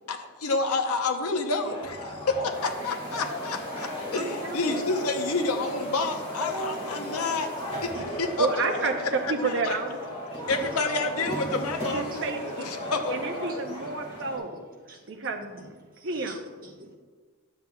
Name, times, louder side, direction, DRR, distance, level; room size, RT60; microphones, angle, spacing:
voice 1, 0.1-7.5 7.8-8.5 9.4-9.8 10.5-12.2 12.6-13.2, left 3 dB, 80° left, 5 dB, 0.8 m, -29 dB
sound 1, 1.6-14.4, equal, 25° left, 2.1 m, -35 dB
voice 2, 4.1-4.8 7.9-8.0 8.4-10.0 11.9-12.7 13.1-14.5 15.1-15.7 16.0-16.4, right 3 dB, 55° right, 5 dB, 0.7 m, -30 dB
voice 3, 13.5-14.6 14.9-15.2 15.6-17.0, right 2 dB, 40° right, -2 dB, 1.2 m, -49 dB
10.5 x 7.5 x 2.3 m, 1.5 s
head